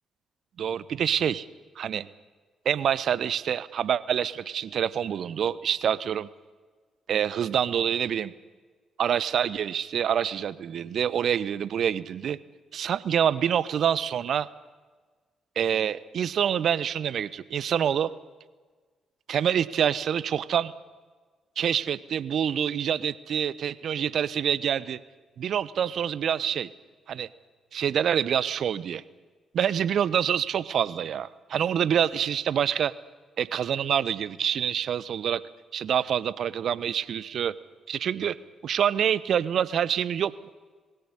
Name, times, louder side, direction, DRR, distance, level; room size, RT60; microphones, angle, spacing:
voice 1, 0.6-1.5 1.8-2.1 2.6-6.3 7.1-8.3 9.0-12.4 12.7-14.5 15.6-18.1 19.3-20.7 21.6-25.0 25.4-26.7 27.1-27.3 27.7-29.0 29.5-32.9 33.4-35.4 35.7-37.5 37.9-38.4 38.6-40.3, right 8 dB, 60° right, 19 dB, 0.9 m, -26 dB
21.0 x 17.0 x 9.8 m, 1.4 s
hypercardioid pair, 45°, 0 cm